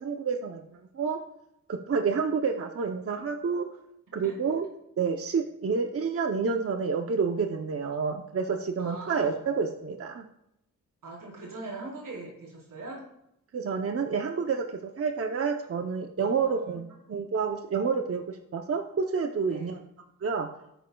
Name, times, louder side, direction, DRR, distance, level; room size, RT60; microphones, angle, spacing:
voice 1, 0.0-0.7 0.9-1.2 1.7-3.7 4.1-4.7 5.0-10.3 13.5-14.6 15.0-19.8 20.2-20.5, right 5 dB, 45° right, 4 dB, 0.8 m, -29 dB
voice 2, 8.8-9.5 11.0-13.1 16.2-16.8 19.5-19.7, right 2 dB, 90° right, -3 dB, 4.1 m, -41 dB
16.5 x 9.0 x 2.3 m, 0.81 s
wide cardioid pair, 110°, 32 cm